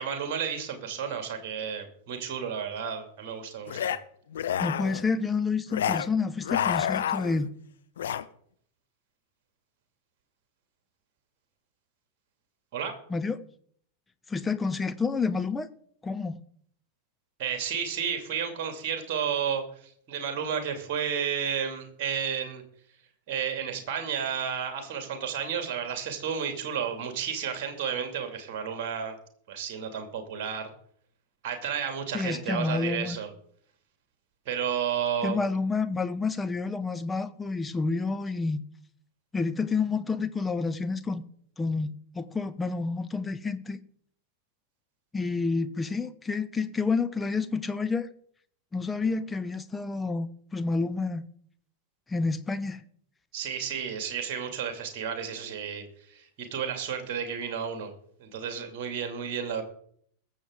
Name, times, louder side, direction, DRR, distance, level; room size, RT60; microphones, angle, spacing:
voice 1, 0.0-3.9 12.7-12.9 17.4-22.6 23.3-29.2 29.5-30.7 31.4-33.3 34.5-35.4 53.3-57.9 58.2-59.6, right 7 dB, 45° right, 2.5 m, -32 dB
sound 1, 3.7-4.0 4.3-5.0 5.7-6.1 6.4-7.5 8.0-8.2, left 9 dB, 60° left, 0.7 m, -29 dB
voice 2, 4.6-7.5 13.1-13.4 14.3-15.7 16.0-16.4 32.1-33.2 35.2-38.6 39.3-41.2 41.6-43.8 45.1-48.1 48.7-51.3 52.1-52.8, left 4 dB, 10° left, 0.8 m, -29 dB
21.5 x 7.3 x 3.8 m
figure-of-eight pair, 90°, 0 cm